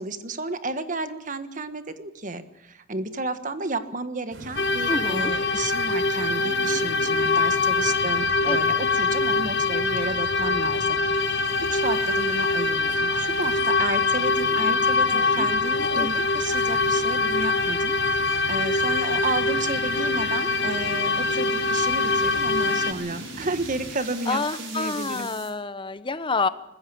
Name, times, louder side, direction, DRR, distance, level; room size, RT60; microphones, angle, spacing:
voice 1, 0.0-11.2 11.7-25.3, right 3 dB, 40° right, 10 dB, 1.5 m, -32 dB
sound 1, 4.3-23.9, right 1 dB, 70° right, 3.8 m, -40 dB
sound 2, 4.6-22.9, left 3 dB, 60° left, 1.4 m, -23 dB
voice 2, 4.9-5.3 8.4-8.8 14.6-14.8 15.1-15.5 15.9-16.1 24.3-26.5, left 3 dB, 25° left, 14 dB, 0.9 m, -28 dB
sound 3, 12.6-25.5, right 5 dB, 85° right, 5.7 m, -44 dB
20.5 x 15.5 x 8.6 m, 0.88 s
head